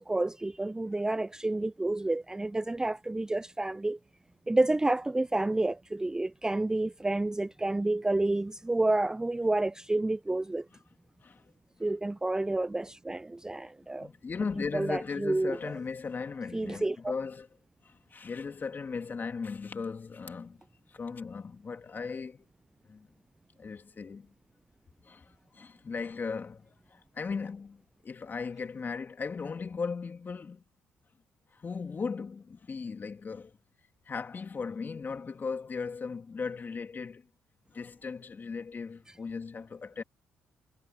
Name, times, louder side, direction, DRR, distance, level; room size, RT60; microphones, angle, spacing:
voice 1, 0.0-4.0 4.5-10.7 11.8-14.1 14.7-15.7 16.5-17.1, right 2 dB, 15° right, 0.4 m, -29 dB
voice 2, 11.2-11.5 14.0-17.5 17.8-20.6 20.9-22.5 22.9-23.1 23.6-24.3 25.0-30.6 31.5-33.6 34.0-37.3 37.7-40.0, left 5 dB, 40° left, 2.9 m, -37 dB
hypercardioid pair, 55°, 5 cm